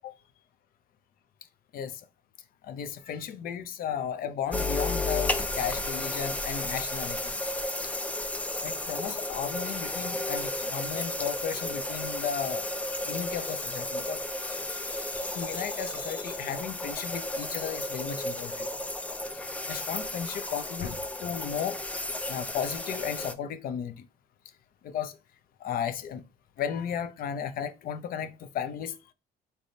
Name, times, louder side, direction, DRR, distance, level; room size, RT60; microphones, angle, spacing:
voice 1, 1.7-2.1 2.6-7.4 7.8-7.9 8.6-12.7 13.0-14.2 14.5-18.7 19.7-21.8 22.3-24.1 24.8-25.2 25.6-26.2 26.6-29.1, left 8 dB, 60° left, 0.6 m, -35 dB
sound 1, 4.5-23.3, left 1 dB, 10° left, 0.4 m, -33 dB
4.2 x 3.4 x 2.6 m
cardioid pair, 110°, 17 cm